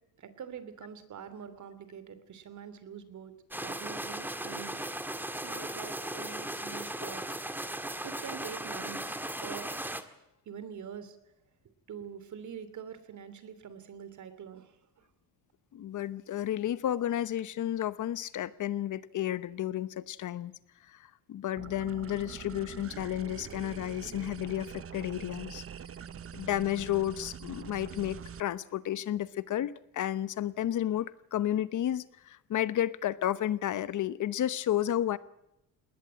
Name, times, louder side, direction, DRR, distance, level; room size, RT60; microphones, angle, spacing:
voice 1, 0.2-3.3 3.6-4.8 5.4-7.4 8.0-9.7 10.5-11.2 11.9-14.8, right 7 dB, 55° right, 12 dB, 2.9 m, -45 dB
sound 1, 3.5-10.0, right 1 dB, 5° right, 1.7 m, -37 dB
voice 2, 15.7-20.5 20.9-25.6 26.3-35.2, left 12 dB, 60° left, 16 dB, 1.0 m, -32 dB
sound 2, 21.6-28.4, right 8 dB, 40° right, 1.0 m, -44 dB
20.0 x 19.0 x 8.8 m, 0.86 s
cardioid pair, 100°, 34 cm